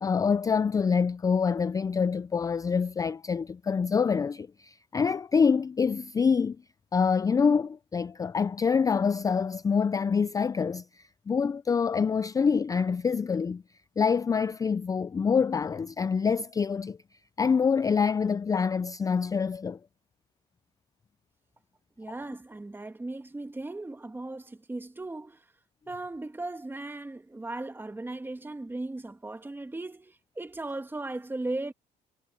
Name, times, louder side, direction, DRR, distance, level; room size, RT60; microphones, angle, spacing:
voice 1, 0.0-6.6 6.9-13.6 14.0-17.0 17.4-19.8, left 6 dB, 20° left, 0.4 m, -26 dB
voice 2, 22.0-25.4 25.9-31.7, right 2 dB, 10° right, 1.6 m, -37 dB
cardioid pair, 110°, 17 cm